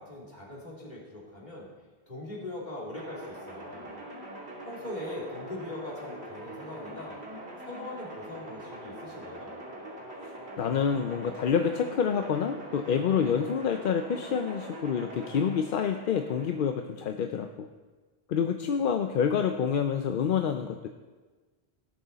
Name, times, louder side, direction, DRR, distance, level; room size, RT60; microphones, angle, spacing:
voice 1, 0.0-1.7 2.1-3.9 4.6-7.2 7.6-9.5, left 1 dB, 40° left, -5 dB, 2.9 m, -41 dB
sound 1, 2.9-16.7, right 1 dB, 75° right, 2.3 m, -43 dB
voice 2, 10.6-17.7 18.3-20.9, left 7 dB, 60° left, 6 dB, 0.7 m, -27 dB
17.5 x 6.4 x 4.0 m, 1.3 s
omnidirectional pair, 1.1 m